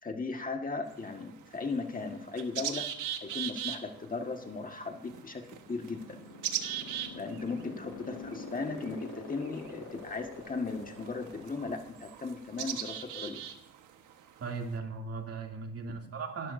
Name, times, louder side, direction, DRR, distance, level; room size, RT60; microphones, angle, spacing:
voice 1, 0.0-2.9 3.2-6.2 7.2-13.4 15.9-16.0, left 4 dB, 30° left, 4 dB, 1.7 m, -37 dB
sound 1, 0.9-14.8, right 10 dB, 90° right, 1.4 m, -41 dB
sound 2, 5.4-12.0, left 4 dB, 85° left, 6.1 m, -45 dB
voice 2, 14.4-16.5, right 4 dB, 50° right, 2 dB, 2.7 m, -37 dB
26.0 x 13.0 x 2.7 m, 0.71 s
cardioid pair, 90°, 30 cm